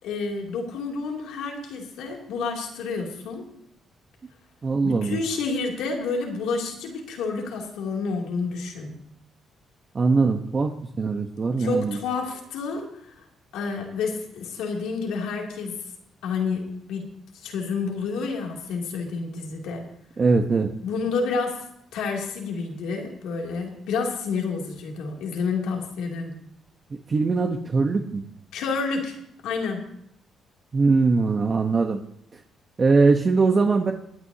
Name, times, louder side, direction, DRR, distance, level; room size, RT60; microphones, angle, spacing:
voice 1, 0.0-3.5 4.8-9.0 11.6-13.2 13.5-15.8 16.2-17.1 17.3-19.9 20.8-21.6 21.9-26.4 28.5-29.1 29.4-29.8, left 4 dB, 90° left, 0 dB, 2.8 m, -29 dB
voice 2, 4.6-5.2 9.9-12.0 20.2-20.7 27.1-28.3 30.7-32.0 32.8-33.9, right 4 dB, 40° right, 3 dB, 1.0 m, -21 dB
23.5 x 9.5 x 2.8 m, 0.74 s
cardioid pair, 90°, 0 cm